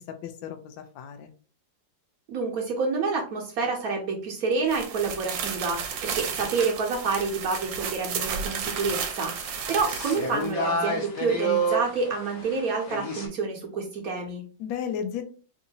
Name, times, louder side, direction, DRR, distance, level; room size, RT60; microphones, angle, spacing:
voice 1, 0.1-1.3 14.6-15.2, left 8 dB, 80° left, 7 dB, 1.3 m, -34 dB
voice 2, 2.3-14.4, right 4 dB, 60° right, 0 dB, 1.1 m, -28 dB
sound 1, 4.7-10.5, right 7 dB, 80° right, 1.3 m, -33 dB
sound 2, 8.2-13.3, right 2 dB, 45° left, 1.1 m, -31 dB
3.7 x 2.6 x 2.7 m, 0.38 s
omnidirectional pair, 2.0 m